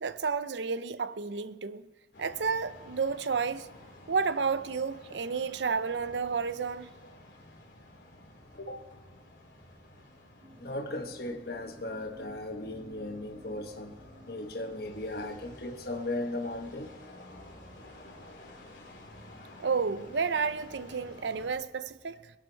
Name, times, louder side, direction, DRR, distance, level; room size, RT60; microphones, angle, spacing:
voice 1, 0.0-1.9 2.2-3.7 4.1-6.9 19.6-22.3, right 5 dB, 75° right, 0.6 m, -31 dB
sound 1, 2.1-21.5, left 1 dB, 80° left, 3.1 m, -52 dB
voice 2, 8.6-8.9 10.6-14.0 14.3-16.9, left 2 dB, 55° left, 1.3 m, -37 dB
sound 2, 10.4-16.2, equal, 50° right, 2.1 m, -55 dB
21.0 x 10.5 x 4.6 m
head